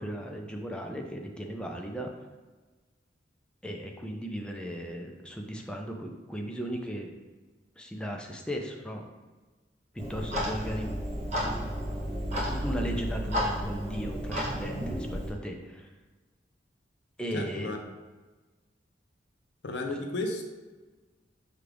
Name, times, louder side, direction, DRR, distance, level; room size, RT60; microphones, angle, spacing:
voice 1, 0.0-2.1 3.6-7.1 7.8-9.1 9.9-11.0 12.5-15.9 17.2-17.7, equal, 5° left, 1 dB, 0.4 m, -36 dB
Clock, 10.0-15.3, equal, 40° right, 0.9 m, -32 dB
voice 2, 17.3-17.8 19.6-20.4, left 2 dB, 65° left, 3 dB, 0.6 m, -33 dB
5.9 x 2.4 x 3.4 m, 1.3 s
head